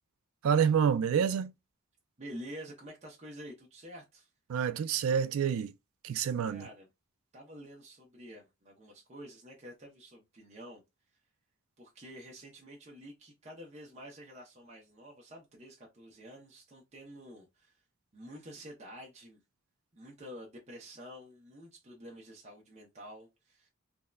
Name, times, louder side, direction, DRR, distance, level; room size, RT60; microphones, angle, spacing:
voice 1, 0.4-1.5 4.5-5.7 6.0-6.7, right 7 dB, 70° right, 0.3 m, -28 dB
voice 2, 2.2-4.3 6.5-6.9 7.3-10.8 11.8-17.8 18.1-19.4 19.9-23.7, equal, 30° right, 0.6 m, -49 dB
3.6 x 2.1 x 2.2 m
head